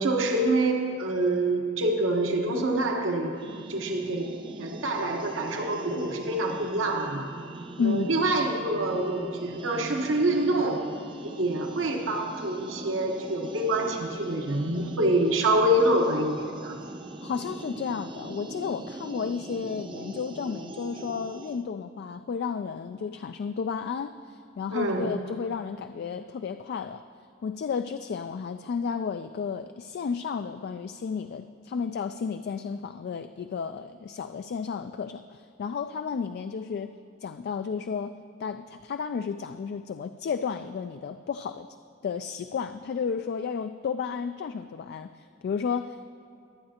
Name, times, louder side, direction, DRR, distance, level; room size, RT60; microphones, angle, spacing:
voice 1, 0.0-3.4 3.7-7.3 7.8-10.9 11.2-16.8 24.7-25.1, right 1 dB, 75° right, 2 dB, 1.2 m, -26 dB
sound 1, 3.3-21.6, right 2 dB, 25° right, 0.5 m, -41 dB
voice 2, 7.8-8.2 17.2-27.0 27.4-36.9 37.2-41.7 42.0-46.1, left 6 dB, 55° left, 9 dB, 0.3 m, -32 dB
23.0 x 8.7 x 2.9 m, 2.6 s
head